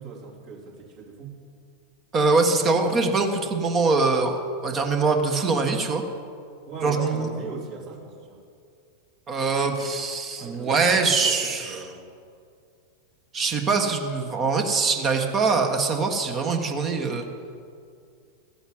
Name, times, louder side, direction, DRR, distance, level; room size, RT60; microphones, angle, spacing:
voice 1, 0.0-1.4 6.6-8.4 10.4-12.1, right 4 dB, 45° right, -3 dB, 3.1 m, -38 dB
voice 2, 2.1-6.0 6.8-7.3 9.3-11.8 13.3-17.2, right 4 dB, 25° right, 4 dB, 1.4 m, -23 dB
14.5 x 8.8 x 7.8 m, 2.3 s
figure-of-eight pair, 90°, 0 cm